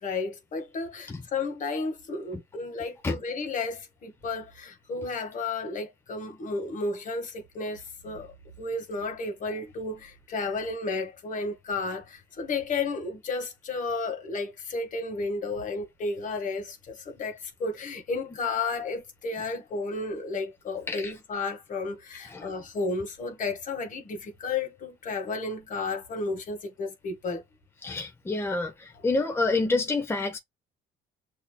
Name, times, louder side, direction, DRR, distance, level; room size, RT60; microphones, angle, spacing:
voice 1, 0.0-27.4, left 3 dB, 50° left, 1.7 m, -33 dB
voice 2, 27.8-30.4, left 3 dB, 15° left, 0.9 m, -28 dB
6.7 x 2.9 x 2.3 m
cardioid pair, 110°, 17 cm